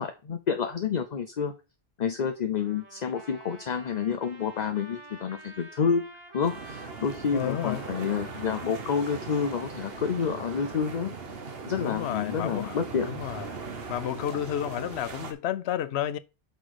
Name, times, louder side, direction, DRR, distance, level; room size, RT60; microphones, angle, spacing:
voice 1, 0.0-1.5 2.0-11.1 11.7-13.1, left 6 dB, 50° left, 0.7 m, -29 dB
Trumpet, 2.6-10.9, right 2 dB, 25° right, 1.6 m, -49 dB
sound 1, 6.4-15.3, right 4 dB, 65° right, 1.3 m, -39 dB
voice 2, 7.3-7.8 11.8-12.8 13.1-13.6 13.9-16.2, left 11 dB, 90° left, 0.9 m, -31 dB
6.0 x 5.2 x 4.8 m
omnidirectional pair, 1.1 m